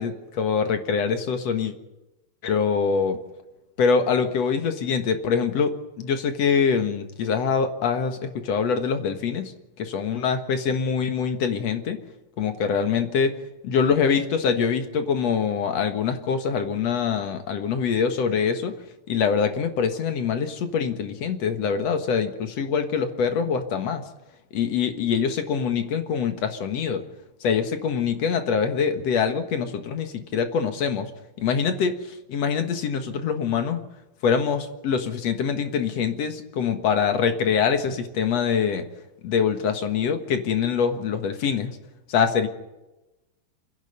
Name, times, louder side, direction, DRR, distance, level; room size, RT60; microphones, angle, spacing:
voice 1, 0.4-1.7 2.4-3.2 3.8-9.5 9.8-12.0 12.4-13.3 13.6-18.7 19.1-24.0 24.5-27.0 27.4-31.1 31.4-32.0 32.3-33.8 34.2-38.8 39.2-41.8 42.1-42.5, left 6 dB, 60° left, 7 dB, 2.4 m, -24 dB
28.5 x 10.5 x 9.3 m, 1.0 s
omnidirectional pair, 3.7 m